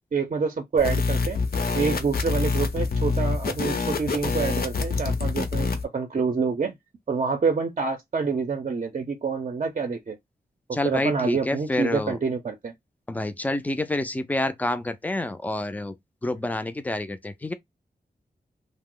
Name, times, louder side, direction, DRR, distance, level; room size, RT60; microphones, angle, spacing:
voice 1, 0.1-1.4 1.7-6.7 7.1-10.2 10.7-12.7, right 5 dB, 45° right, 0.5 m, -27 dB
sound 1, 0.8-5.8, left 4 dB, 70° left, 0.7 m, -26 dB
voice 2, 10.7-12.2 13.1-15.9 16.2-17.5, left 1 dB, 10° left, 0.4 m, -28 dB
2.8 x 2.0 x 3.7 m
wide cardioid pair, 140°, 16 cm